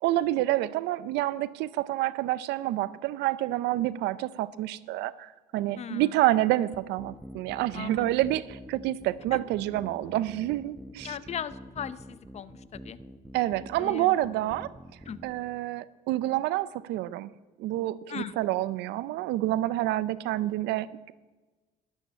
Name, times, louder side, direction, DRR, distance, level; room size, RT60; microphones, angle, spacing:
voice 1, 0.0-11.2 13.3-14.7 15.2-17.3 17.6-21.1, right 15 dB, 90° right, 18 dB, 0.6 m, -28 dB
voice 2, 5.8-6.1 7.7-8.1 9.3-9.4 11.0-13.0 13.8-14.2 15.1-15.2 18.1-18.4, left 8 dB, 40° left, 15 dB, 0.7 m, -38 dB
sound 1, 6.7-15.4, equal, 5° right, 1.1 m, -46 dB
12.5 x 11.5 x 9.0 m, 1.2 s
cardioid pair, 110°, 17 cm